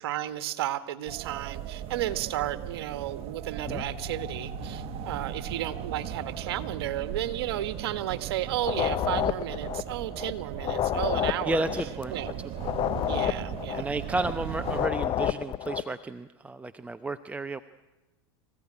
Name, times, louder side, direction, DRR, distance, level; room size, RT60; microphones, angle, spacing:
voice 1, 0.0-11.6 12.1-12.4 13.0-13.9, right 13 dB, 75° right, 11 dB, 1.6 m, -33 dB
sound 1, 1.1-14.9, right 11 dB, 45° right, 1.4 m, -38 dB
sound 2, 3.6-14.5, left 7 dB, 80° left, 6.3 m, -48 dB
sound 3, 8.6-10.3 10.6-14.3 14.6-15.9, left 11 dB, 35° left, 0.8 m, -30 dB
voice 2, 11.4-12.8 13.7-17.6, right 2 dB, 10° right, 10 dB, 0.8 m, -32 dB
25.5 x 16.0 x 9.9 m, 1.1 s
hypercardioid pair, 100°, 13 cm